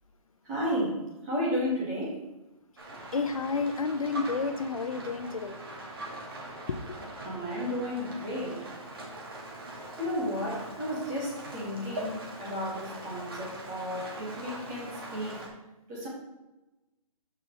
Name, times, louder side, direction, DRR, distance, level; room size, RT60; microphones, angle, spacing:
voice 1, 0.4-2.2 7.2-8.7 8.9-9.0 10.0-15.5 15.9-16.1, equal, 10° right, 1.5 m, -33 dB
Rain, 2.8-15.5, right 1 dB, 35° right, 1.9 m, -42 dB
voice 2, 3.1-5.6 6.7-7.0, left 4 dB, 65° left, 0.8 m, -30 dB
13.5 x 5.7 x 3.1 m
hypercardioid pair, 180°, 19 cm